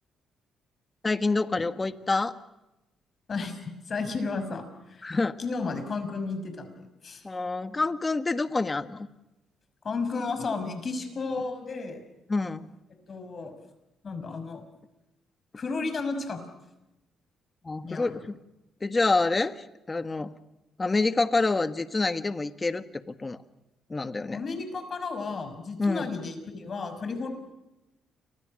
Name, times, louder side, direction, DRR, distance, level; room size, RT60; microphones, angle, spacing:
voice 1, 1.0-2.3 5.0-5.4 7.2-9.1 12.3-12.7 17.6-18.3 18.8-20.3 20.8-23.4 23.9-24.4 25.8-26.1, left 3 dB, 25° left, 11 dB, 1.5 m, -27 dB
voice 2, 3.3-5.1 5.4-7.3 9.8-12.0 13.1-13.5 14.0-14.6 15.5-16.4 17.8-18.2 24.3-27.3, left 4 dB, 45° left, 9 dB, 5.6 m, -33 dB
30.0 x 25.5 x 6.5 m, 0.96 s
cardioid pair, 90°, 0 cm